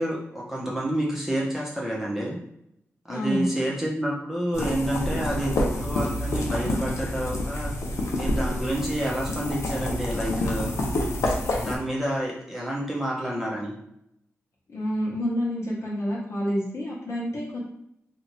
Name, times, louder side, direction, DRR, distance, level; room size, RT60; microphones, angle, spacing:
voice 1, 0.0-2.4 3.1-7.7 8.1-10.7 11.3-13.7, right 1 dB, 5° right, -5 dB, 0.8 m, -29 dB
voice 2, 3.1-3.5 14.7-17.6, equal, 60° left, -6 dB, 0.9 m, -28 dB
sound 1, 4.5-11.8, left 1 dB, 75° left, 0.6 m, -28 dB
2.7 x 2.4 x 3.1 m, 0.76 s
cardioid pair, 75°, 5 cm